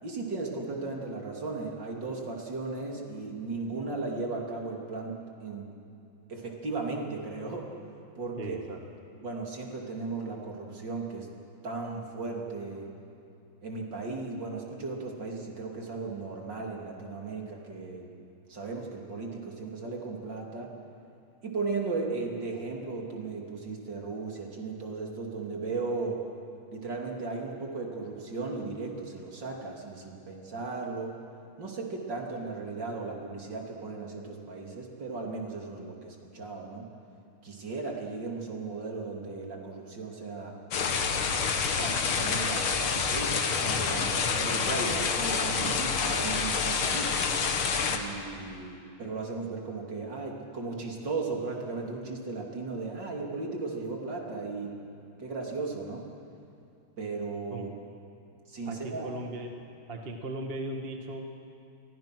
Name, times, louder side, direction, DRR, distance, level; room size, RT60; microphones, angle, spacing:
voice 1, 0.0-5.1 5.4-5.7 6.3-7.7 8.2-8.6 9.2-11.3 11.6-12.9 13.6-18.1 18.5-20.7 21.4-26.2 26.7-31.2 31.6-36.9 37.4-40.5 41.8-47.2 47.9-54.7 55.2-56.1 57.0-57.7 58.5-59.1, right 3 dB, 55° right, 0 dB, 3.6 m, -36 dB
voice 2, 8.4-8.8 57.5-57.7 58.6-59.5 59.9-61.5, right 1 dB, 30° right, 3 dB, 1.6 m, -37 dB
sound 1, 40.7-48.0, left 5 dB, 80° left, 2.4 m, -28 dB
30.0 x 23.0 x 6.2 m, 2.6 s
omnidirectional pair, 2.3 m